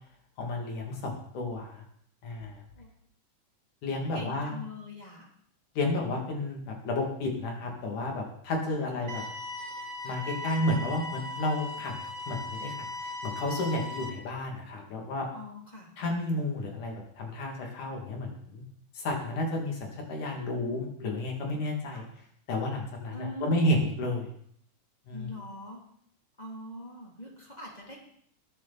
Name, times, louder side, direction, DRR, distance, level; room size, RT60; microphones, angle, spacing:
voice 1, 0.4-1.8 2.2-2.6 3.8-4.6 5.8-9.2 10.0-12.0 12.3-12.8 13.0-15.3 16.0-18.6 19.0-22.0 22.5-24.3 25.1-25.3, left 1 dB, 70° left, 1 dB, 4.3 m, -31 dB
voice 2, 4.1-5.3 8.6-9.1 15.3-15.9 21.9-22.1 23.1-24.0 25.1-25.8 26.4-28.1, left 1 dB, 15° left, -2 dB, 3.0 m, -43 dB
sound 1, 9.1-14.1, left 2 dB, 50° right, 2.4 m, -38 dB
20.5 x 9.9 x 4.3 m, 0.67 s
omnidirectional pair, 3.7 m